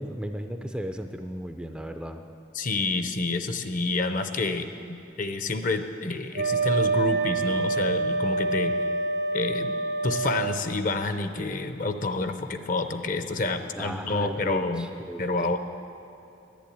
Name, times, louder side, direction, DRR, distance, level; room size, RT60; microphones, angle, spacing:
voice 1, 0.0-2.2 13.8-15.5, equal, 5° right, 6 dB, 0.4 m, -35 dB
voice 2, 2.5-8.7 9.3-9.7 10.0-14.9 15.2-15.6, left 3 dB, 45° left, 8 dB, 0.7 m, -28 dB
Wind instrument woodwind instrument, 6.3-10.6, right 3 dB, 75° right, 0.9 m, -26 dB
11.0 x 10.5 x 8.6 m, 2.7 s
head